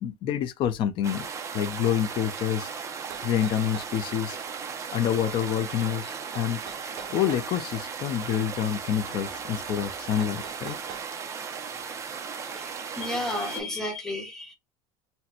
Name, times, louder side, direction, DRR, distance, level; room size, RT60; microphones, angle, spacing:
voice 1, 0.0-1.3 1.5-2.7 3.2-4.4 4.9-6.6 7.1-10.7, left 9 dB, 35° left, 0.5 m, -27 dB
sound 1, 1.0-13.6, right 6 dB, 20° right, 0.5 m, -36 dB
sound 2, 3.1-4.0 6.3-7.5 10.2-11.1, right 7 dB, 50° right, 1.3 m, -44 dB
voice 2, 12.6-14.5, left 1 dB, 5° left, 1.1 m, -32 dB
4.1 x 2.2 x 4.3 m
cardioid pair, 165°, 15 cm